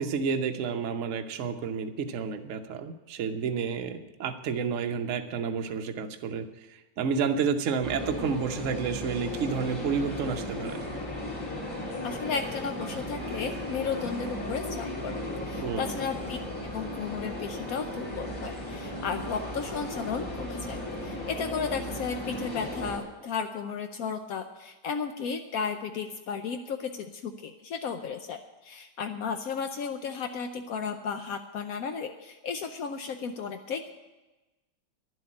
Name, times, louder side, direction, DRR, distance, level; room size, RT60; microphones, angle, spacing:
voice 1, 0.0-6.5 7.0-10.8 15.6-15.9, right 6 dB, 55° right, 6 dB, 0.9 m, -30 dB
sound 1, 7.8-23.0, left 1 dB, 40° left, 3.6 m, -36 dB
voice 2, 12.0-33.9, left 6 dB, 75° left, 6 dB, 0.8 m, -34 dB
11.5 x 7.8 x 9.7 m, 1.1 s
omnidirectional pair, 2.3 m